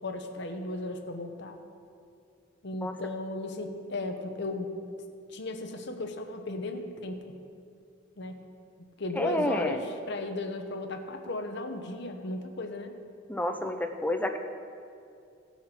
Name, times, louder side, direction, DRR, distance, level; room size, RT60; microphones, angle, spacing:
voice 1, 0.0-1.6 2.6-4.8 5.3-7.4 8.2-8.4 9.0-12.9, left 2 dB, 60° left, 5 dB, 1.0 m, -35 dB
voice 2, 9.2-9.8 13.3-14.4, left 1 dB, 10° left, 5 dB, 0.6 m, -29 dB
17.0 x 5.8 x 4.4 m, 2.5 s
head